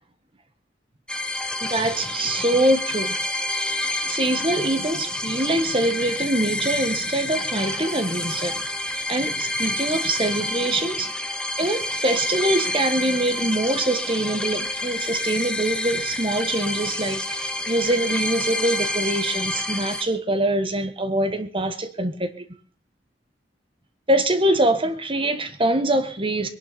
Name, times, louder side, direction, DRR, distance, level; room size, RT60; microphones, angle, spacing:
sound 1, 1.1-20.0, left 1 dB, 5° left, 1.0 m, -28 dB
voice 1, 1.7-3.1 4.0-8.6 9.1-11.1 11.6-22.4 24.1-26.5, right 1 dB, 30° right, 1.5 m, -24 dB
22.0 x 11.5 x 4.3 m
head